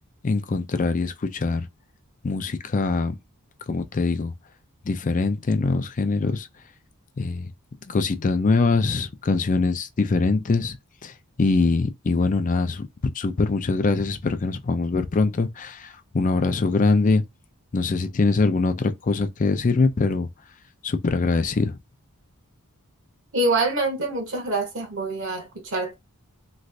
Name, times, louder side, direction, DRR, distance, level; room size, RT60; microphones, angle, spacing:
voice 1, 0.2-1.7 2.2-3.1 3.7-4.3 4.8-6.5 7.2-7.5 7.9-10.8 11.0-11.1 11.4-12.9 13.1-17.2 17.7-20.3 20.8-21.8, left 3 dB, 35° left, 0.4 m, -23 dB
voice 2, 23.3-25.9, right 2 dB, 60° right, 1.1 m, -25 dB
3.1 x 2.5 x 2.6 m
head